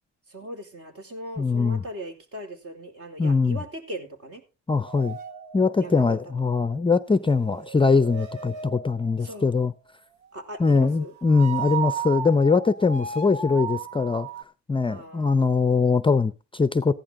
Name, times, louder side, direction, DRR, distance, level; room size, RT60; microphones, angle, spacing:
voice 1, 0.3-4.4 5.8-6.2 9.2-9.5 10.3-11.1 14.9-15.5, right 1 dB, 50° right, 4.1 m, -39 dB
voice 2, 1.4-1.8 3.2-3.6 4.7-5.2 5.5-9.7 10.6-14.3 14.7-16.9, left 4 dB, 15° left, 0.6 m, -22 dB
sound 1, 4.9-6.8 7.3-9.3 11.2-14.4, right 7 dB, 75° right, 1.5 m, -35 dB
15.0 x 10.5 x 3.7 m
cardioid pair, 90°, 30 cm